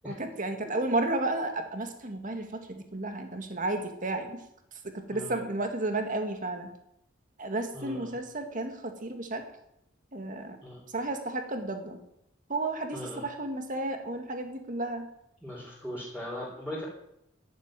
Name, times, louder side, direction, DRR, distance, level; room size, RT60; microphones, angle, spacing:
voice 1, 0.0-4.4 4.8-6.7 7.4-9.4 10.1-10.6 10.9-12.0 12.5-15.0, right 2 dB, 40° right, 5 dB, 2.1 m, -32 dB
voice 2, 7.7-8.2 10.6-10.8 12.9-13.2 15.4-16.9, left 1 dB, 5° right, -5 dB, 3.8 m, -39 dB
11.0 x 10.5 x 9.0 m, 0.79 s
head